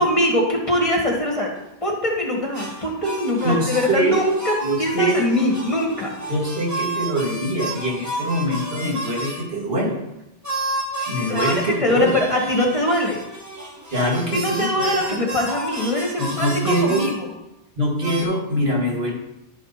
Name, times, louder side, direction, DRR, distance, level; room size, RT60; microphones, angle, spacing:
voice 1, 0.0-1.5 1.8-4.5 4.8-6.1 11.3-13.2 14.3-17.3, left 1 dB, 30° left, -1 dB, 1.9 m, -22 dB
sound 1, 2.5-9.4 10.4-17.2 18.0-18.2, right 1 dB, 15° right, 1.5 m, -31 dB
voice 2, 3.4-4.2 4.6-5.2 6.3-10.0 11.1-12.1 13.9-14.7 16.2-17.1 17.8-19.1, right 1 dB, 70° right, -2 dB, 2.3 m, -23 dB
11.0 x 5.3 x 4.2 m, 0.90 s
omnidirectional pair, 1.1 m